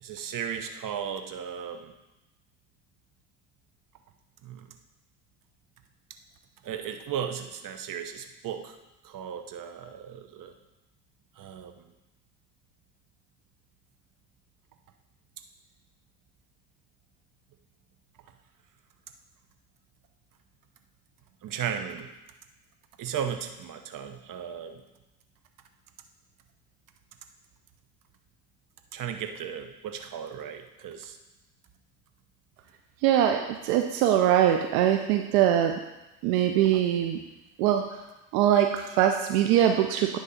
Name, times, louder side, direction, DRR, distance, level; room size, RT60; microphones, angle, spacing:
voice 1, 0.0-1.9 4.4-4.7 6.6-8.8 9.0-10.5 11.4-11.9 21.4-22.1 23.0-24.8 28.9-31.2 36.7-36.8, right 8 dB, 45° right, 7 dB, 1.0 m, -36 dB
voice 2, 33.0-35.8 36.2-37.2 37.6-37.9 38.3-40.2, right 11 dB, 75° right, 5 dB, 0.7 m, -22 dB
10.0 x 3.9 x 5.5 m, 0.99 s
hypercardioid pair, 65°, 44 cm